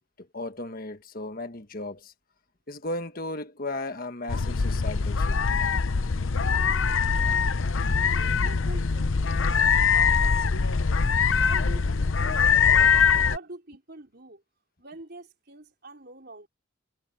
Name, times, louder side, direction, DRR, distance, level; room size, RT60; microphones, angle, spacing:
voice 1, 0.2-2.1 2.7-5.4, left 2 dB, 45° left, 1.5 m, -35 dB
sound 1, 4.3-13.4, left 5 dB, 75° left, 0.7 m, -23 dB
voice 2, 8.4-10.8 11.3-12.9 13.2-14.4 14.8-16.5, right 2 dB, 50° right, 4.8 m, -45 dB
head